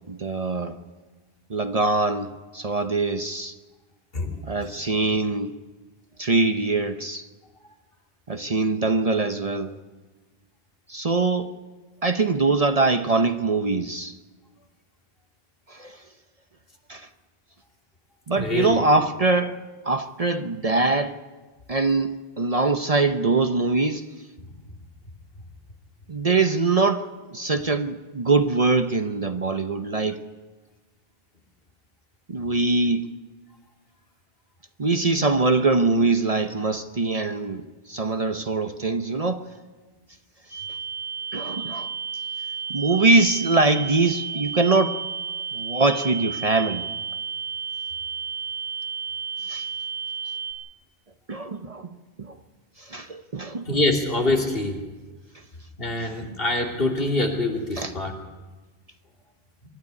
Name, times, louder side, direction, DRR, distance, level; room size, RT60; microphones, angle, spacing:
voice 1, 0.1-0.8 1.5-3.5 4.5-5.5 6.2-7.3 8.3-9.7 10.9-11.5 12.0-14.1 15.7-16.0 16.9-17.1 18.3-19.6 19.8-21.2 21.7-24.0 26.1-30.2 32.3-33.1 34.8-37.6 37.9-39.4 41.3-41.9 42.7-45.0 45.5-46.8 49.5-49.7 51.3-51.9 52.2-52.3 52.9-53.7 57.8-57.9, right 3 dB, 40° right, 0.9 m, -23 dB
voice 2, 18.3-18.8 53.7-54.8 55.8-58.1, left 2 dB, 65° left, 3.0 m, -24 dB
sound 1, 40.5-50.5, right 6 dB, ahead, 4.6 m, -32 dB
24.0 x 12.5 x 9.7 m
omnidirectional pair, 1.0 m